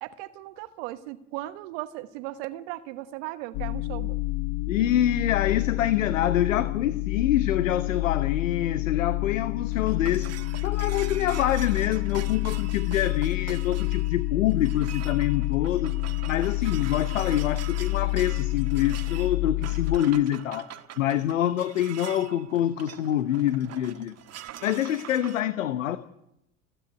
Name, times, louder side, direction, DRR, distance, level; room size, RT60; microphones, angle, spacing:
voice 1, 0.0-4.2, right 16 dB, 65° right, 12 dB, 1.2 m, -37 dB
sound 1, 3.5-20.0, left 23 dB, 50° left, 0.7 m, -28 dB
voice 2, 4.7-10.4 10.6-15.9 16.3-20.7 21.0-24.1 24.6-26.0, left 11 dB, 80° left, 13 dB, 1.0 m, -26 dB
sound 2, 9.4-25.4, right 11 dB, 40° right, 1.7 m, -44 dB
29.0 x 10.0 x 9.5 m, 0.83 s
hypercardioid pair, 70°, 38 cm